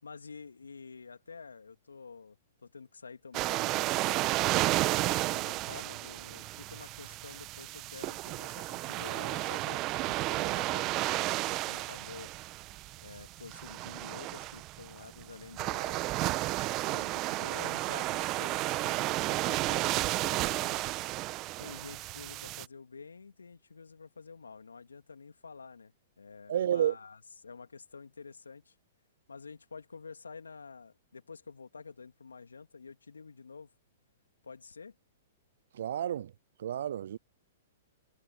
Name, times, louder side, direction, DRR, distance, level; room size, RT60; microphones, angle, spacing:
voice 1, 0.0-4.3 5.0-12.3 13.0-16.1 16.8-20.9 21.6-28.7 29.3-33.7 34.4-35.0, left 5 dB, 85° left, 2.9 m, -49 dB
sound 1, 3.3-22.7, right 19 dB, 35° right, 1.1 m, -32 dB
voice 2, 26.5-27.0 35.7-36.3 36.6-37.2, right 10 dB, 65° right, 0.3 m, -30 dB
hypercardioid pair, 115°, 0 cm